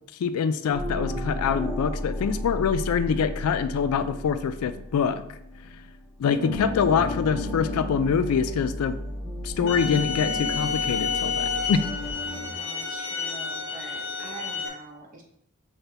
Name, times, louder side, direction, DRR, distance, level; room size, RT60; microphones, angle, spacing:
voice 1, 0.2-5.2 6.2-9.0 9.4-11.8, left 6 dB, 90° left, 12 dB, 0.3 m, -25 dB
sound 1, 0.7-5.9 6.2-12.5, left 1 dB, ahead, 1.0 m, -33 dB
voice 2, 6.8-7.8 12.2-15.2, right 3 dB, 35° right, 1 dB, 0.7 m, -45 dB
sound 2, 9.7-14.7, left 5 dB, 60° left, 1.0 m, -30 dB
5.6 x 2.1 x 3.4 m, 0.71 s
head